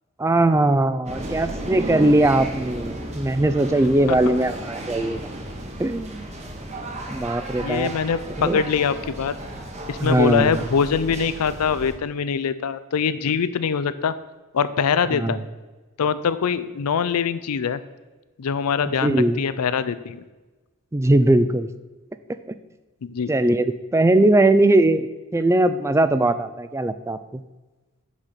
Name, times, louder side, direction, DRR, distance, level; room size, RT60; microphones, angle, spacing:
voice 1, 0.2-5.2 5.8-6.3 7.1-7.9 8.4-8.6 10.0-10.6 15.1-15.4 19.0-19.4 20.9-21.7 23.3-25.1 25.3-27.4, right 1 dB, 10° right, 12 dB, 0.3 m, -20 dB
sound 1, 1.1-11.9, right 1 dB, 30° right, 1.2 m, -34 dB
voice 2, 7.6-9.4 9.9-14.1 14.5-15.4 16.0-17.8 18.4-20.2 23.0-23.3, left 6 dB, 90° left, 14 dB, 0.5 m, -23 dB
6.2 x 5.7 x 6.7 m, 1.2 s
head